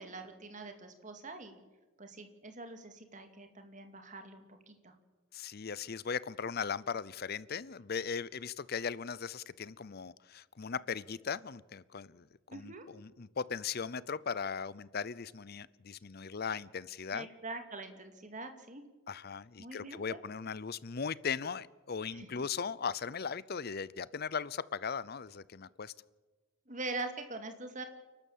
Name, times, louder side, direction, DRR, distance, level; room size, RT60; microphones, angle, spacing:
voice 1, 0.0-1.6 2.0-4.9 12.5-12.9 17.1-18.8 19.6-20.2 22.1-22.3 26.7-27.9, right 3 dB, 40° right, 6 dB, 2.4 m, -44 dB
voice 2, 5.3-17.3 19.1-25.9, left 6 dB, 50° left, 20 dB, 0.6 m, -38 dB
29.5 x 12.5 x 7.4 m, 1.3 s
head